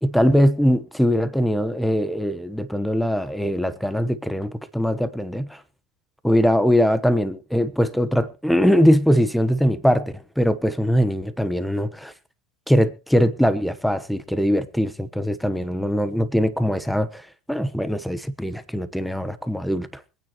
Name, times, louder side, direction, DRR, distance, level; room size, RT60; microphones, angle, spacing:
voice 1, 0.0-5.6 6.2-12.1 12.7-20.0, equal, ahead, 1.0 m, -21 dB
25.0 x 9.3 x 3.0 m
supercardioid pair, 105°, 0 cm